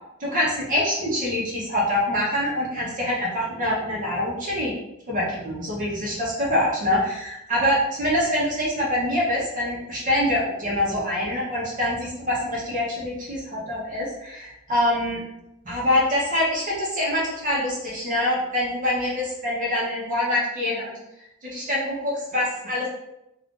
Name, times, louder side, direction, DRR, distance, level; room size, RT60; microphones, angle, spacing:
voice 1, 0.2-4.7 5.1-15.2 15.6-20.9 21.4-22.9, left 1 dB, 40° right, -5 dB, 0.8 m, -25 dB
2.4 x 2.4 x 3.7 m, 0.85 s
head